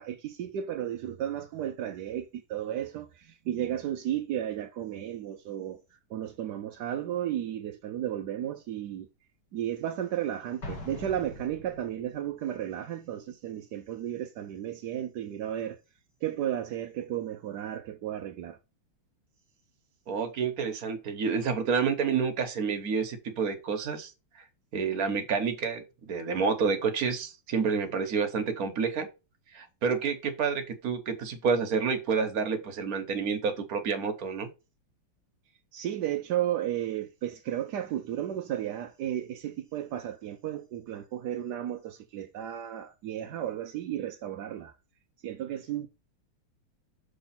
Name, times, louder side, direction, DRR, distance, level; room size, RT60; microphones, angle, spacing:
voice 1, 0.0-9.1 9.5-15.8 16.2-18.6 35.7-44.7 45.2-45.9, right 11 dB, 70° right, 0.9 m, -34 dB
Explosion, 10.6-12.3, left 2 dB, 50° left, 2.5 m, -42 dB
voice 2, 20.1-24.1 24.7-29.1 29.5-34.5, right 5 dB, 50° right, 1.3 m, -29 dB
6.2 x 3.4 x 5.7 m
omnidirectional pair, 2.4 m